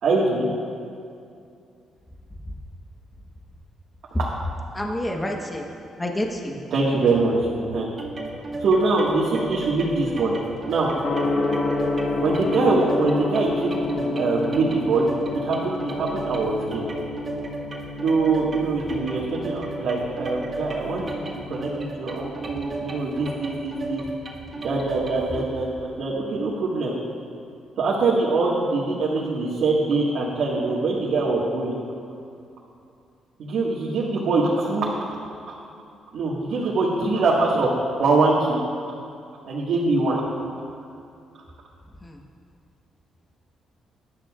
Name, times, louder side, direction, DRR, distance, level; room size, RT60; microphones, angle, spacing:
voice 1, 0.0-0.5 6.7-7.9 8.6-10.3 10.7-10.9 12.2-15.1 15.4-16.8 18.0-24.0 24.6-26.9 27.8-31.8 33.4-35.0 35.5-35.6 36.1-38.6 39.4-40.2, right 3 dB, 65° right, -6 dB, 1.8 m, -23 dB
voice 2, 4.7-5.7 6.0-6.6 42.0-42.2, left 1 dB, 15° left, 1 dB, 1.2 m, -28 dB
sound 1, 8.0-25.4, right 2 dB, 35° right, 2.0 m, -35 dB
Gong, 11.0-21.9, left 2 dB, 70° left, 1.3 m, -29 dB
18.0 x 12.0 x 2.5 m, 2.5 s
cardioid pair, 90°, 0 cm